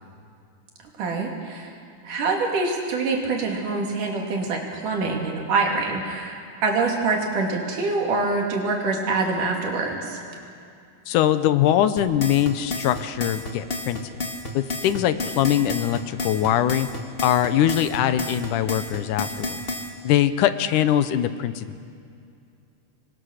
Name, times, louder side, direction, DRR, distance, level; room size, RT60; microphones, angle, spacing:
voice 1, 1.0-1.7 2.0-10.2, right 3 dB, 90° right, 1 dB, 4.2 m, -25 dB
voice 2, 11.1-14.0 14.5-16.9 17.2-19.6 20.0-21.8, left 11 dB, 85° left, 11 dB, 2.4 m, -22 dB
sound 1, 12.0-19.9, left 2 dB, 30° left, 1.1 m, -31 dB
26.5 x 21.0 x 6.5 m, 2.4 s
omnidirectional pair, 3.5 m